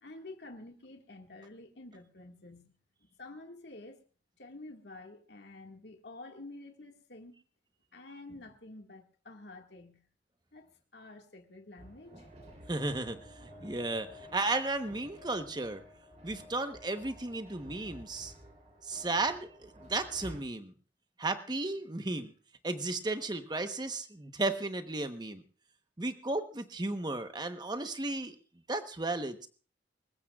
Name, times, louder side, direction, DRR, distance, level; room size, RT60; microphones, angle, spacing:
voice 1, 0.0-2.7 3.0-4.0 4.4-7.4 7.9-10.1 10.5-12.3, left 2 dB, 70° left, 1.9 m, -49 dB
sound 1, 11.8-20.4, equal, 40° right, 3.3 m, -52 dB
voice 2, 12.7-15.8 16.2-18.3 18.8-20.7 21.2-22.3 22.6-25.4 26.0-28.4 28.7-29.5, right 2 dB, 25° right, 1.0 m, -34 dB
25.5 x 15.0 x 2.4 m
head